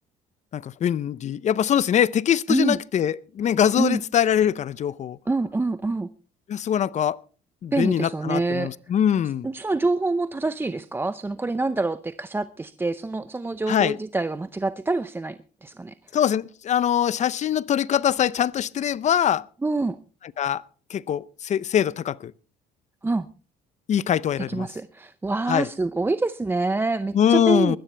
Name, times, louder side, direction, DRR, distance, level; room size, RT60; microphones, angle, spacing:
voice 1, 0.5-5.2 6.5-7.2 7.6-9.5 13.7-14.0 16.1-19.4 20.4-20.6 20.9-22.3 23.9-24.7 25.5-25.7 27.1-27.8, left 9 dB, 45° left, 0.6 m, -23 dB
voice 2, 2.5-2.8 3.8-4.0 5.3-6.1 7.7-8.7 9.4-15.9 19.6-20.0 23.0-23.3 24.4-27.8, right 3 dB, 15° right, 0.6 m, -26 dB
20.5 x 14.0 x 3.4 m
cardioid pair, 110°, 17 cm